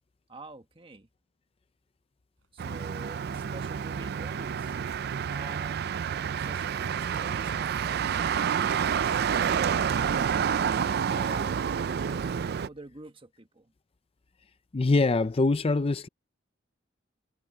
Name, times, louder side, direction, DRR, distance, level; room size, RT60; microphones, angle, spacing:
voice 1, 0.3-1.1 2.5-4.8 5.1-9.6 10.2-11.6 12.0-13.7, right 2 dB, 30° right, 1.5 m, -47 dB
sound 1, 2.4-10.7, right 6 dB, 85° right, 4.0 m, -57 dB
Motor vehicle (road), 2.6-12.7, right 7 dB, 55° right, 0.4 m, -29 dB
voice 2, 14.7-16.1, left 3 dB, 30° left, 0.5 m, -24 dB
head